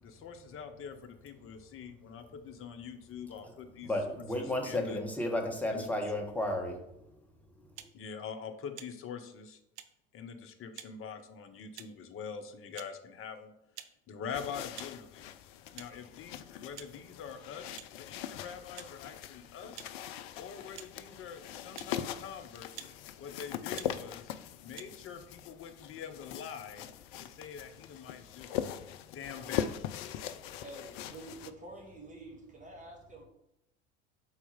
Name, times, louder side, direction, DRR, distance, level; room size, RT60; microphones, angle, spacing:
voice 1, 0.0-3.9 4.4-5.0 5.7-5.9 7.9-9.6 10.1-13.5 14.1-15.3 15.7-19.9 20.4-22.8 23.2-24.3 24.6-26.9 27.2-29.7, left 7 dB, 40° left, 7 dB, 0.9 m, -44 dB
voice 2, 3.8-6.7, left 1 dB, 5° left, 1 dB, 1.3 m, -32 dB
sound 1, 7.8-7.9 8.7-8.9 9.8-9.9 10.7-10.9 11.8-12.0 12.7-12.9 13.8-13.9 14.7-14.9 15.8-15.9 16.8-16.9 17.8-17.9 18.7-18.9 19.8-19.9 20.7-20.9 21.7-21.9 22.7-22.9 23.7-23.9 24.8-24.9, right 10 dB, 75° right, 0.6 m, -47 dB
sound 2, 14.3-31.5, left 10 dB, 60° left, 0.5 m, -41 dB
voice 3, 30.6-33.2, right 2 dB, 20° right, 0 dB, 1.9 m, -48 dB
4.4 x 4.0 x 5.6 m, 0.81 s
hypercardioid pair, 70°, 34 cm